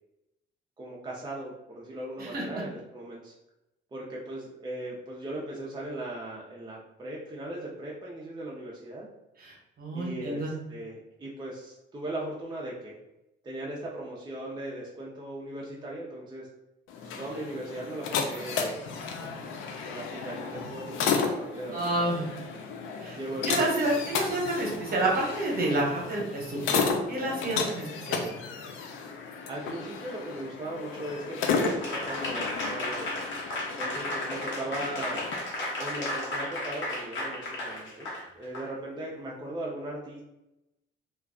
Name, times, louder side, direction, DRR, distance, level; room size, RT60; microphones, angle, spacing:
voice 1, 0.8-3.3 3.9-9.1 9.9-13.0 13.4-16.5 17.2-18.8 19.2-19.5 19.8-22.2 23.2-23.7 29.5-33.1 33.8-35.2 35.8-40.2, right 1 dB, 20° right, -4 dB, 0.5 m, -38 dB
voice 2, 2.2-2.6 9.4-10.5 21.7-22.3 23.0-23.2 23.4-26.8 27.1-28.2, right 1 dB, 50° right, -2 dB, 1.1 m, -29 dB
sound 1, 16.9-35.4, left 5 dB, 90° left, 0.4 m, -33 dB
Applause / Crowd, 31.4-38.7, left 1 dB, 70° left, 1.0 m, -34 dB
2.4 x 2.2 x 3.5 m, 0.92 s
cardioid pair, 90°, 20 cm